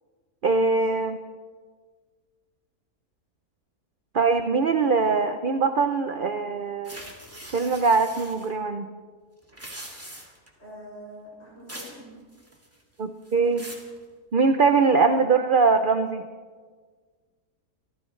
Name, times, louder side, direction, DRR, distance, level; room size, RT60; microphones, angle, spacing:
voice 1, 0.4-1.2 4.1-7.0 7.5-8.9 13.0-13.7 14.3-16.2, right 4 dB, 50° right, 8 dB, 0.6 m, -22 dB
sound 1, 6.8-8.5 9.4-10.5 11.7-12.0 12.3-12.8 13.2-13.9, right 1 dB, 10° right, 2.1 m, -42 dB
voice 2, 10.6-12.2, equal, 40° left, -5 dB, 6.8 m, -44 dB
26.5 x 14.5 x 3.2 m, 1.5 s
omnidirectional pair, 1.6 m